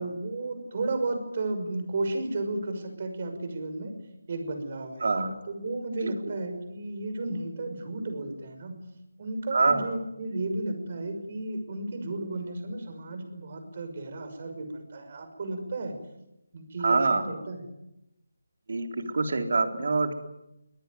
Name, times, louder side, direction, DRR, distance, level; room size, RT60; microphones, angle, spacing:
voice 1, 0.0-3.9 4.3-5.0 5.5-8.8 9.2-16.0 16.5-17.6, right 2 dB, 40° right, 7 dB, 6.1 m, -33 dB
voice 2, 5.0-5.3 6.0-6.1 9.5-9.9 16.8-17.2 18.7-20.1, right 3 dB, 60° right, 6 dB, 3.7 m, -25 dB
23.5 x 18.5 x 9.5 m, 0.89 s
figure-of-eight pair, 165°, 0 cm